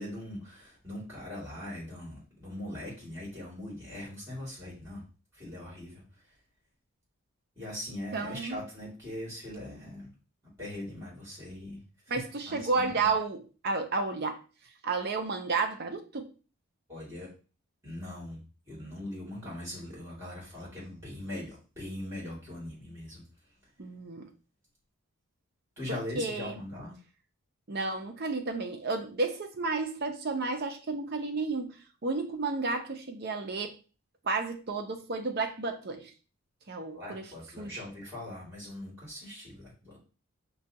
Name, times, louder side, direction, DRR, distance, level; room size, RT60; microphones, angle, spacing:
voice 1, 0.0-5.0 5.3-6.0 7.6-10.1 10.6-11.8 12.5-13.1 16.9-17.3 17.8-18.4 18.7-23.2 25.8-26.9 36.9-40.0, left 1 dB, 10° right, 2.2 m, -41 dB
voice 2, 8.1-8.6 12.1-14.4 14.8-16.3 23.8-24.3 26.1-26.6 27.7-33.7 34.2-36.1 36.7-37.8, right 3 dB, 45° right, 0.5 m, -32 dB
5.5 x 2.3 x 2.8 m
head